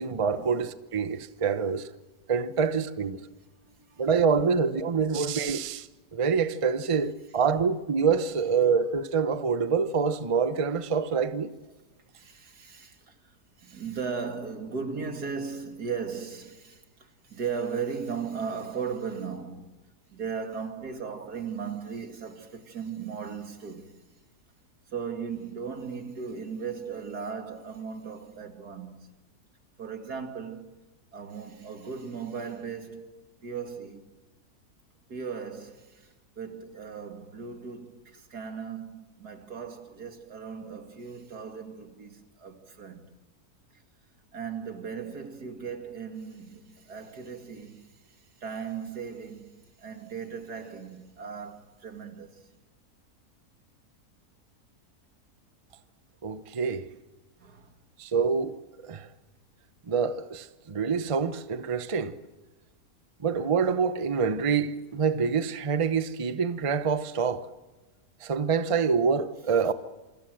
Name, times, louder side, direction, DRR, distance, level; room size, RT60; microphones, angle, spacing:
voice 1, 0.0-1.9 2.3-3.2 4.0-11.5 56.2-56.9 58.0-58.6 58.8-59.1 59.9-62.1 63.2-67.5 68.2-69.7, right 5 dB, 25° right, 0.8 m, -26 dB
voice 2, 3.6-4.1 12.1-19.8 20.1-24.1 24.9-29.2 29.8-30.8 31.1-33.1 33.4-34.1 35.1-43.1 43.7-43.8 44.3-52.5 57.4-57.7, right 6 dB, 85° right, 2.8 m, -37 dB
27.5 x 25.0 x 7.8 m
omnidirectional pair, 1.6 m